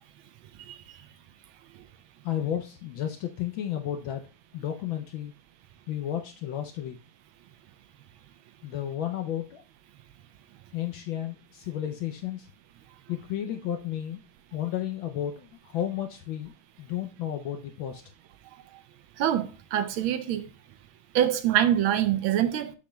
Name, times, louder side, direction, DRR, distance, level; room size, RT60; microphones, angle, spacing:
voice 1, 2.2-4.2 4.5-5.3 5.9-7.0 8.6-9.6 10.7-12.5 13.1-14.2 14.5-18.0, left 11 dB, 70° left, 1.3 m, -32 dB
voice 2, 19.2-20.5 21.1-22.7, right 11 dB, 75° right, 1.4 m, -25 dB
7.1 x 7.1 x 2.2 m
omnidirectional pair, 2.4 m